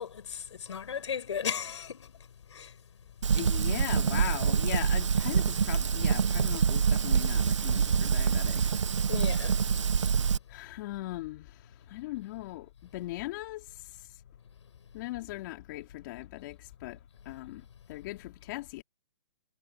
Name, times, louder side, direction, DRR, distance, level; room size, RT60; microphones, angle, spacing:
voice 1, 0.0-2.8 9.1-9.6, left 7 dB, 75° left, 5.9 m, -36 dB
Fire, 3.2-10.4, right 6 dB, 85° right, 1.2 m, -26 dB
voice 2, 3.3-8.6 10.5-14.1 14.9-17.0 17.3-18.8, left 18 dB, 45° left, 3.7 m, -39 dB
hypercardioid pair, 140°, 15 cm